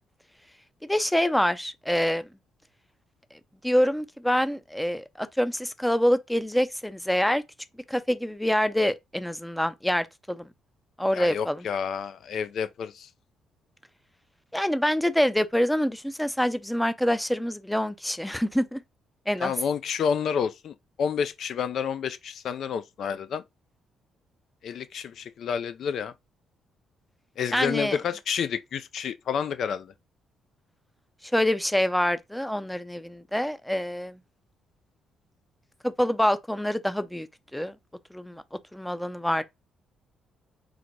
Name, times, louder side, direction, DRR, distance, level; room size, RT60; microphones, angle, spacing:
voice 1, 0.8-2.3 3.6-7.4 7.9-10.5 11.0-11.7 14.5-18.8 19.3-19.5 27.5-28.0 31.3-34.2 35.8-37.3 37.5-37.7 38.1-38.4 38.7-39.4, equal, 5° left, 0.4 m, -26 dB
voice 2, 11.1-13.1 19.4-23.4 24.6-26.1 27.4-29.9, left 7 dB, 65° left, 0.3 m, -29 dB
3.9 x 2.1 x 4.5 m
cardioid pair, 90°, 0 cm